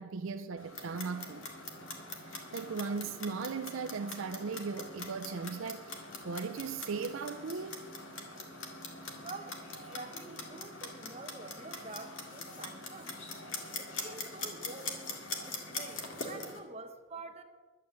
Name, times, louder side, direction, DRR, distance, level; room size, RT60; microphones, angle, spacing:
voice 1, 0.0-1.5 2.3-7.9, right 5 dB, 70° right, 0.5 m, -38 dB
Clock, 0.6-16.6, left 3 dB, 70° left, 2.0 m, -43 dB
voice 2, 9.2-9.6 9.9-13.2 13.8-15.0 15.5-17.4, right 3 dB, 30° right, 1.0 m, -47 dB
11.5 x 7.7 x 8.1 m
head